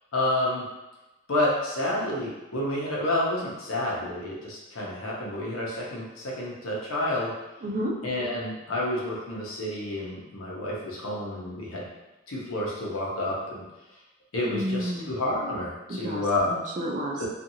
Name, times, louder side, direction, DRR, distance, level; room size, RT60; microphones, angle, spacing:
voice 1, 0.1-0.6 1.3-7.3 8.0-11.9 12.3-13.6 14.3-16.5 17.2-17.3, left 1 dB, 85° left, -4 dB, 0.8 m, -29 dB
voice 2, 7.6-7.9 14.4-15.1 16.0-17.2, equal, 35° right, 0 dB, 0.3 m, -31 dB
2.7 x 2.5 x 2.7 m, 1.0 s
head